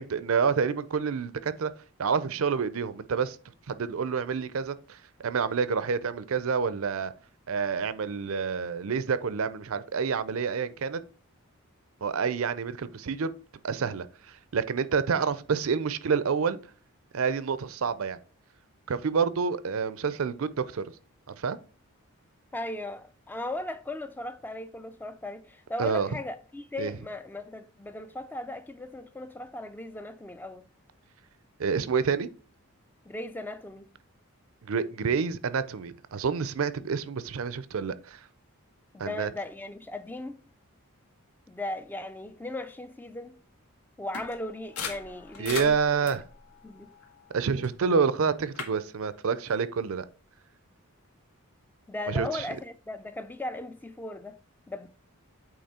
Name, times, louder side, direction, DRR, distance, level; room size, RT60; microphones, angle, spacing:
voice 1, 0.0-1.7 2.0-3.4 3.7-5.0 5.2-7.1 7.5-11.0 12.0-13.3 13.6-14.1 14.5-16.6 17.1-18.2 18.9-20.8 21.4-21.6 25.8-26.1 26.8-26.9 31.6-32.3 34.7-38.2 39.0-39.3 45.4-46.2 47.3-50.0 52.1-52.4, right 5 dB, 65° right, 0.5 m, -28 dB
voice 2, 22.5-30.7 33.1-33.9 38.9-40.4 41.5-43.4 44.0-45.8 46.0-46.2 46.6-46.9 51.9-54.4 54.7-54.9, left 1 dB, 10° left, 0.3 m, -37 dB
sound 1, 44.1-47.8 48.2-48.7, left 6 dB, 80° left, 1.3 m, -40 dB
8.7 x 3.1 x 4.2 m
head